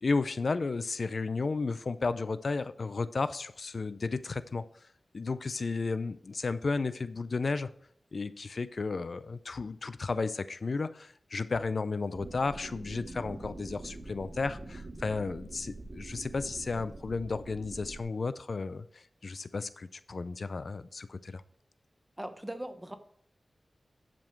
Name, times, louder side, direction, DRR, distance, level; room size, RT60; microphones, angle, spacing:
voice 1, 0.0-4.9 5.1-7.7 8.1-21.4, left 4 dB, 65° left, 15 dB, 0.4 m, -33 dB
sound 1, 12.1-18.0, right 2 dB, 45° right, 2.1 m, -45 dB
voice 2, 22.2-23.0, right 1 dB, 15° right, 8 dB, 1.1 m, -39 dB
10.5 x 5.2 x 4.5 m, 0.64 s
wide cardioid pair, 65°, 0 cm